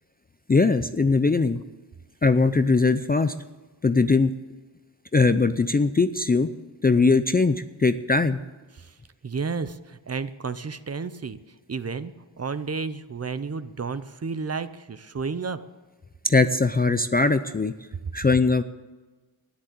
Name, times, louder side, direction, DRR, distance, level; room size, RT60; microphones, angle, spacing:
voice 1, 0.5-1.6 2.2-3.3 3.8-4.3 5.1-6.5 6.8-8.4 16.2-17.7 18.1-18.6, left 3 dB, 20° left, 11 dB, 0.4 m, -20 dB
voice 2, 9.2-11.4 11.7-15.6, right 5 dB, 35° right, 13 dB, 0.6 m, -32 dB
12.5 x 10.0 x 8.1 m, 1.2 s
wide cardioid pair, 125°, 46 cm